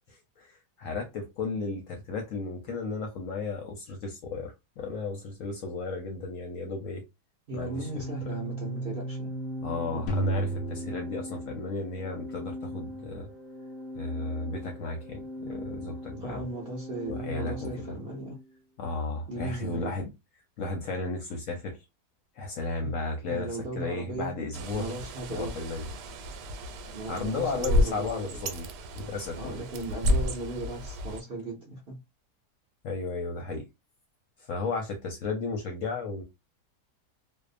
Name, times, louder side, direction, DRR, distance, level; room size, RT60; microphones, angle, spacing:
voice 1, 0.0-7.0 7.5-7.9 9.6-13.3 13.9-16.5 17.1-18.0 18.8-20.0 20.6-21.8 22.4-23.5 23.8-24.9 25.3-25.9 27.1-28.7 29.0-29.6 32.8-33.7 34.5-36.2, left 3 dB, 65° left, 0.8 m, -34 dB
voice 2, 7.5-9.3 9.9-10.1 16.2-18.4 19.3-19.9 22.8-22.9 23.3-24.3 24.7-25.5 26.9-28.4 29.4-32.0, right 2 dB, 50° right, 0.7 m, -37 dB
Organ, 7.7-18.4, equal, 25° left, 0.6 m, -39 dB
sound 1, 10.1-12.2, right 2 dB, 90° left, 0.5 m, -32 dB
Bird, 24.5-31.2, left 1 dB, 85° right, 1.2 m, -31 dB
2.7 x 2.0 x 2.4 m
omnidirectional pair, 1.8 m